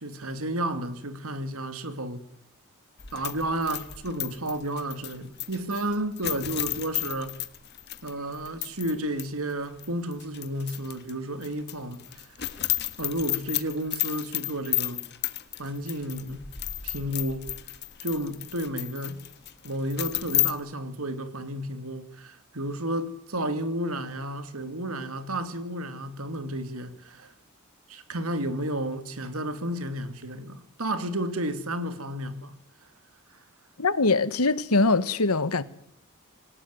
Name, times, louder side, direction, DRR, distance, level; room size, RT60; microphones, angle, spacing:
voice 1, 0.0-2.2 3.1-7.3 8.0-12.2 13.0-15.0 15.6-16.4 16.8-17.5 18.0-19.2 19.6-27.3 27.9-32.5, right 1 dB, 75° right, 2.6 m, -32 dB
sound 1, 3.0-8.9 9.2-9.3 9.8-11.1 11.4-20.5, left 15 dB, 50° left, 1.6 m, -32 dB
voice 2, 33.8-35.6, left 3 dB, 85° left, 1.5 m, -22 dB
26.5 x 17.5 x 9.6 m
head